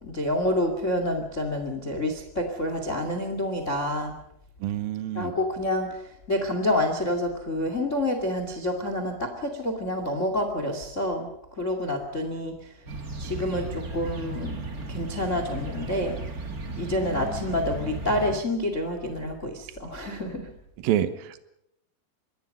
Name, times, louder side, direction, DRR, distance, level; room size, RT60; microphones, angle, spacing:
voice 1, 0.0-4.2 5.1-11.3 11.5-12.7 13.2-14.6 14.9-16.2 16.8-20.5, left 1 dB, 75° left, 6 dB, 0.7 m, -28 dB
voice 2, 4.6-5.3 20.8-21.4, right 11 dB, 85° right, 10 dB, 2.0 m, -27 dB
sound 1, 12.9-18.4, right 2 dB, 70° right, 0.8 m, -35 dB
25.5 x 21.5 x 5.5 m, 0.79 s
omnidirectional pair, 5.7 m